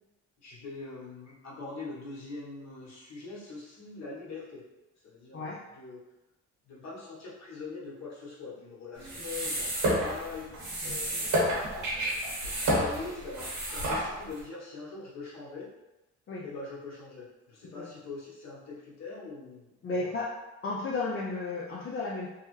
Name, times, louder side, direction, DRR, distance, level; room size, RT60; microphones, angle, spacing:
voice 1, 0.4-4.6 5.0-6.0 6.6-15.7 16.4-20.2, left 4 dB, 60° left, -6 dB, 1.3 m, -43 dB
sound 1, 9.0-14.4, right 1 dB, 75° right, 1.4 m, -30 dB
voice 2, 19.8-20.3 20.6-22.3, left 3 dB, 45° left, -4 dB, 0.5 m, -33 dB
3.3 x 2.1 x 3.1 m, 1.0 s
cardioid pair, 90°, 30 cm